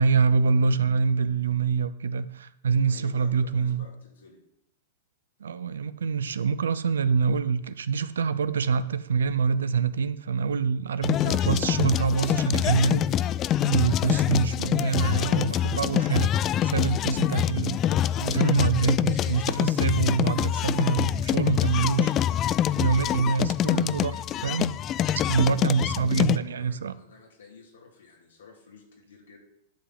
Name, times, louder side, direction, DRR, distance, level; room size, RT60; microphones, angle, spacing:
voice 1, 0.0-3.9 5.4-13.0 13.6-17.8 18.1-22.1 22.8-24.7 25.3-26.9, right 5 dB, 80° right, 15 dB, 0.5 m, -25 dB
voice 2, 2.8-4.4 25.7-29.5, left 4 dB, 80° left, 0 dB, 2.7 m, -51 dB
sound 1, 11.0-26.4, left 11 dB, 35° left, 0.3 m, -25 dB
11.5 x 3.9 x 7.6 m, 0.80 s
hypercardioid pair, 105°, 0 cm